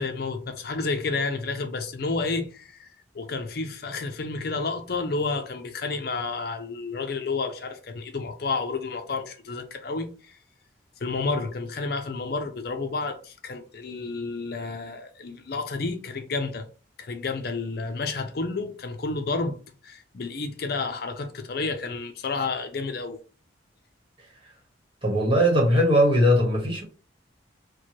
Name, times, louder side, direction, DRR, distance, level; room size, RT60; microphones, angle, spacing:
voice 1, 0.0-2.9 3.1-10.4 11.0-16.7 17.0-19.6 19.8-23.2, left 3 dB, 55° left, 0.5 m, -30 dB
voice 2, 25.0-26.8, equal, 30° right, 1.2 m, -20 dB
4.5 x 2.2 x 3.0 m
head